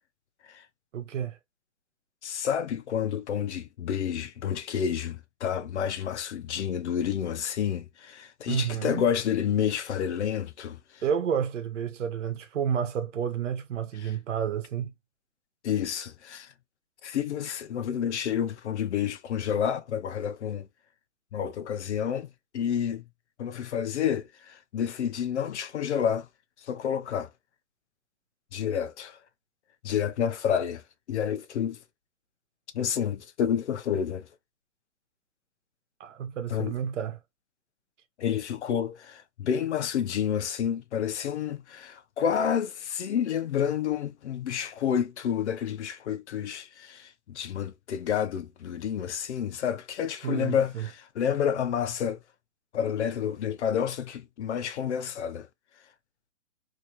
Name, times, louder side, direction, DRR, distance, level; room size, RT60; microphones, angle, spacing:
voice 1, 0.9-1.4 8.5-9.1 11.0-14.9 36.0-37.2 50.2-50.9, right 8 dB, 65° right, 1.0 m, -30 dB
voice 2, 2.2-11.0 14.0-14.1 15.6-16.5 17.0-20.7 21.3-23.0 23.4-26.3 26.6-27.3 28.5-29.2 29.8-30.8 31.1-31.8 32.7-34.3 36.5-36.7 38.2-52.2 52.7-55.5, left 8 dB, 60° left, 0.8 m, -29 dB
3.0 x 2.9 x 2.9 m
hypercardioid pair, 145°, 39 cm